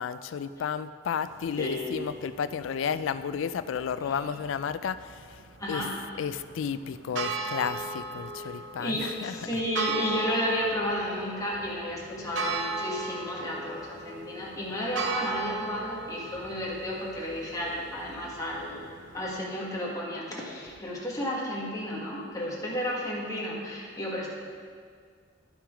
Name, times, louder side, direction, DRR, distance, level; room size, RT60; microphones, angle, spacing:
voice 1, 0.0-5.2 5.7-5.9 6.1-9.6, left 7 dB, 80° left, 14 dB, 0.3 m, -32 dB
sound 1, 1.2-19.3, right 3 dB, 70° right, 0.7 m, -38 dB
voice 2, 1.6-1.9 4.0-4.4 5.6-5.9 8.8-18.9 19.1-24.3, equal, 20° left, -4 dB, 1.7 m, -32 dB
11.0 x 5.9 x 5.0 m, 2.1 s
head